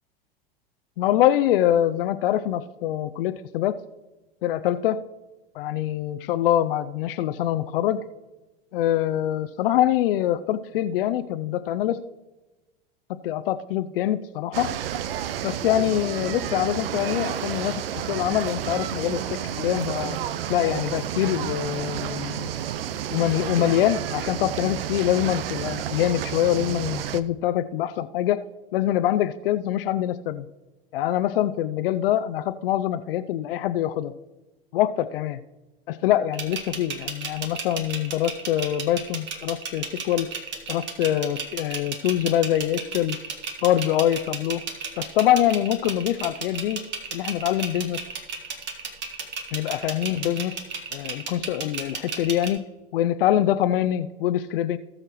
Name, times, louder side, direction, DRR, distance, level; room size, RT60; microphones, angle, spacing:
voice 1, 1.0-3.8 4.4-5.0 5.5-8.0 8.7-12.0 13.1-14.7 15.4-17.8 18.1-20.2 20.5-22.5 23.1-28.4 28.7-30.5 30.9-34.1 34.7-35.4 35.9-40.3 40.7-43.2 43.6-44.6 45.0-46.8 47.1-48.0 49.5-50.6 50.9-52.6 52.9-54.8, left 12 dB, 70° left, 11 dB, 0.5 m, -24 dB
sound 1, 14.5-27.2, right 10 dB, 75° right, 0.6 m, -31 dB
sound 2, 36.3-52.5, right 6 dB, 40° right, 1.7 m, -33 dB
18.5 x 6.4 x 3.1 m, 1.1 s
hypercardioid pair, 85°, 29 cm